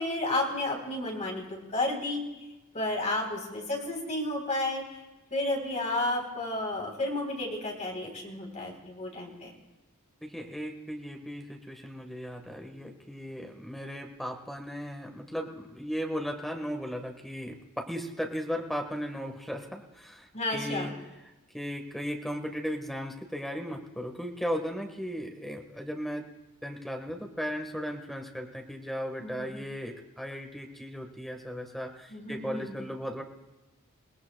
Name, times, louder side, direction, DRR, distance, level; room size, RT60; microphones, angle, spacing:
voice 1, 0.0-2.3 2.7-4.8 5.3-9.5 20.3-20.9 29.2-29.5 32.1-32.7, left 2 dB, 35° left, 0 dB, 3.8 m, -32 dB
voice 2, 10.2-20.9 21.5-26.3 26.6-33.2, equal, ahead, 3 dB, 1.4 m, -36 dB
28.5 x 18.5 x 2.3 m, 1.0 s
head